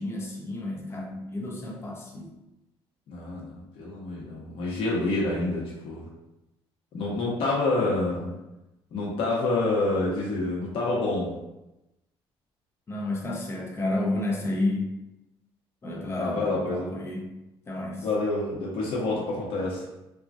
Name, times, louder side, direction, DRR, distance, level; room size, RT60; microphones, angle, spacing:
voice 1, 0.0-2.3 12.9-14.9 15.8-17.3 17.7-18.1, left 2 dB, 25° left, -1 dB, 0.6 m, -31 dB
voice 2, 3.1-6.1 6.9-8.3 8.9-11.3 16.2-16.9 18.0-19.8, left 2 dB, 65° left, -4 dB, 1.1 m, -27 dB
3.0 x 2.3 x 2.6 m, 0.94 s
cardioid pair, 125°, 10 cm